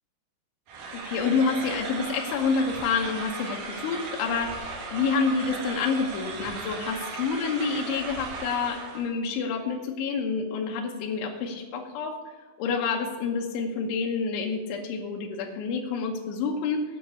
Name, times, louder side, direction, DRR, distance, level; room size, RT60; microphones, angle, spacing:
sound 1, 0.7-9.1, right 4 dB, 60° right, 3.4 m, -36 dB
voice 1, 1.1-12.2 12.6-16.8, left 5 dB, 80° left, 0 dB, 3.4 m, -28 dB
9.1 x 7.3 x 8.3 m, 1.4 s
omnidirectional pair, 5.5 m